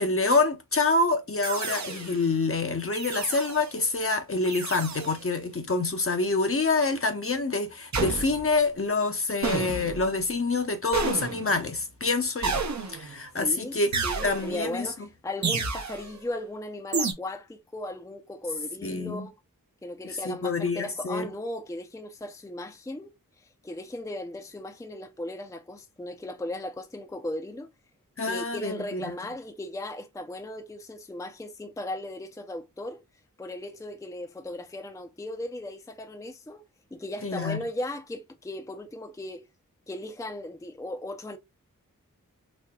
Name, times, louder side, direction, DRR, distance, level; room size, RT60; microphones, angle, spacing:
voice 1, 0.0-13.9 14.2-14.9 18.8-19.3 20.0-21.3 28.2-29.1 37.2-37.6, left 3 dB, 40° left, 0.7 m, -27 dB
sound 1, 1.4-2.2 2.9-3.7 4.4-5.2 7.9-8.6 9.4-10.1 10.9-11.6 12.4-13.2 13.9-14.7 15.4-16.1 16.9-17.1, right 4 dB, 55° right, 0.7 m, -30 dB
voice 2, 13.4-13.8 14.0-19.3 19.8-23.1 23.4-27.7 28.2-33.0 33.4-36.6 36.9-39.4 39.9-41.4, left 1 dB, 10° left, 0.5 m, -37 dB
4.2 x 2.8 x 2.2 m
wide cardioid pair, 65°, 33 cm